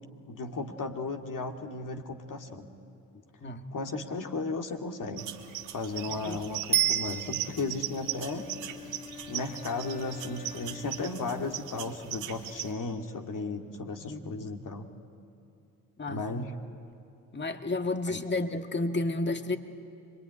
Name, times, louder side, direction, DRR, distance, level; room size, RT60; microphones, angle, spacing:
voice 1, 0.3-2.7 3.7-5.3 5.7-8.4 9.3-14.9 16.1-16.6 18.1-18.2, left 3 dB, 45° left, 3 dB, 2.4 m, -35 dB
sound 1, 5.2-12.7, right 12 dB, 70° right, 1.9 m, -39 dB
Bicycle bell, 6.7-7.8 16.9-17.0, right 12 dB, 20° right, 1.1 m, -28 dB
Wind instrument woodwind instrument, 7.5-12.0, left 5 dB, 75° left, 2.3 m, -47 dB
voice 2, 14.0-14.5 16.0-16.4 17.3-19.6, left 2 dB, 25° left, 6 dB, 2.1 m, -31 dB
25.0 x 23.5 x 9.9 m, 2.6 s
hypercardioid pair, 55°, 45 cm